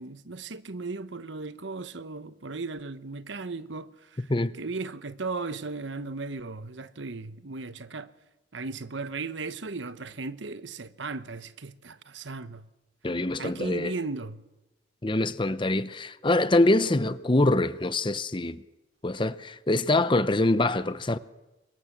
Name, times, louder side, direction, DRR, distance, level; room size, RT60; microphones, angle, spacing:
voice 1, 0.0-4.3 4.6-8.1 8.5-12.7 13.4-14.4, right 3 dB, 75° right, 1.1 m, -36 dB
voice 2, 4.2-4.5 13.0-13.9 15.0-18.6 19.0-21.2, left 2 dB, 25° left, 0.8 m, -24 dB
27.0 x 23.5 x 7.5 m
head